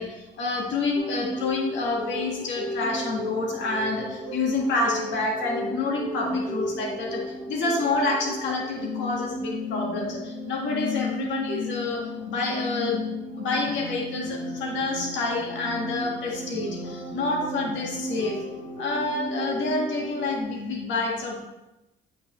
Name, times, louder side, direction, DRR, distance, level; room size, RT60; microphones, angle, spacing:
voice 1, 0.0-13.1 13.3-18.4 18.8-21.3, left 3 dB, 75° left, -1 dB, 1.9 m, -28 dB
sound 1, 1.0-20.4, left 1 dB, 40° left, 2.3 m, -34 dB
8.1 x 5.9 x 3.2 m, 0.99 s
cardioid pair, 85°, 19 cm